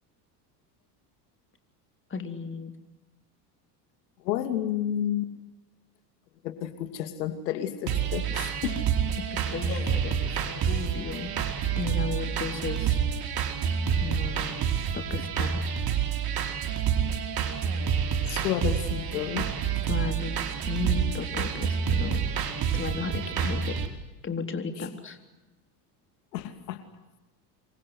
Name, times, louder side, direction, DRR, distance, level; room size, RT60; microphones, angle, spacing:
voice 1, 2.1-2.7 9.3-11.3 11.8-13.0 13.4-13.6 14.0-14.6 14.9-15.6 19.8-22.3 22.7-23.8 24.2-25.2, left 5 dB, 25° left, 7 dB, 3.8 m, -35 dB
voice 2, 4.2-5.3 6.4-8.8 9.7-9.8 18.3-19.6 26.3-26.8, left 11 dB, 80° left, 9 dB, 2.8 m, -31 dB
sound 1, 7.9-23.9, right 7 dB, 45° right, 4.7 m, -28 dB
28.0 x 23.5 x 8.0 m, 1.0 s
hypercardioid pair, 85°, 49 cm